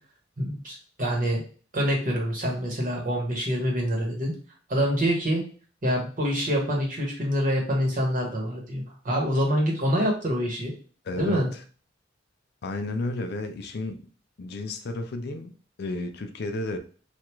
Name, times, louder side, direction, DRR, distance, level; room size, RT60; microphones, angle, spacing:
voice 1, 0.4-1.4 1.7-4.3 4.7-5.4 5.8-10.7 11.2-11.5, equal, 45° right, 0 dB, 1.1 m, -26 dB
voice 2, 11.0-11.6 12.6-14.0 14.4-16.8, left 2 dB, 55° left, 7 dB, 0.4 m, -32 dB
3.4 x 2.4 x 3.0 m, 0.38 s
head